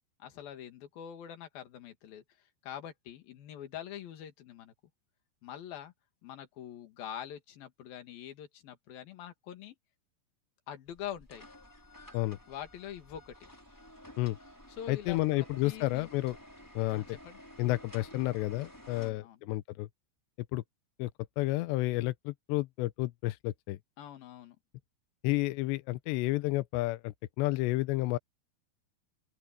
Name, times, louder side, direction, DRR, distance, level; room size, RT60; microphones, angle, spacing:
voice 1, 0.2-4.7 5.4-5.9 6.2-9.8 10.7-11.4 12.5-13.3 14.7-16.1 16.9-17.4 18.0-18.1 18.9-19.4 24.0-24.6, left 10 dB, 55° left, 3.4 m, -44 dB
sound 1, 10.9-19.1, left 1 dB, 5° left, 3.6 m, -53 dB
voice 2, 14.9-16.4 16.8-17.2 17.6-19.9 20.5-20.6 21.0-21.1 21.4-23.8 25.2-28.2, left 18 dB, 85° left, 2.6 m, -31 dB
open air
omnidirectional pair, 5.7 m